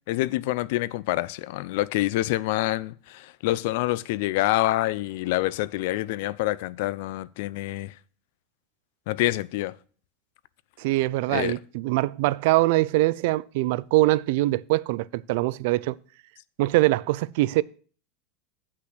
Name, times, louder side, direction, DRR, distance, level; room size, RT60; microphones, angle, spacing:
voice 1, 0.1-7.9 9.1-9.7 11.3-11.5, left 17 dB, 60° left, 0.4 m, -26 dB
voice 2, 10.8-16.0 16.6-17.6, right 19 dB, 60° right, 0.3 m, -23 dB
8.2 x 5.9 x 6.0 m
supercardioid pair, 165°, 0 cm